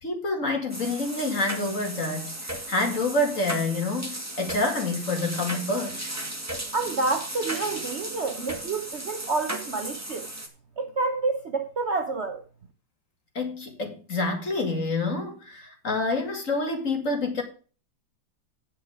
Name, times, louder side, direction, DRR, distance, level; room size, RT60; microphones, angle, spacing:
voice 1, 0.0-6.1 13.3-17.4, left 2 dB, 40° left, 2.6 m, -27 dB
sound 1, 0.7-10.5, right 1 dB, 10° right, 1.8 m, -36 dB
voice 2, 6.7-10.3 10.8-12.4, right 3 dB, 45° right, 1.0 m, -28 dB
9.7 x 7.9 x 5.0 m
omnidirectional pair, 2.1 m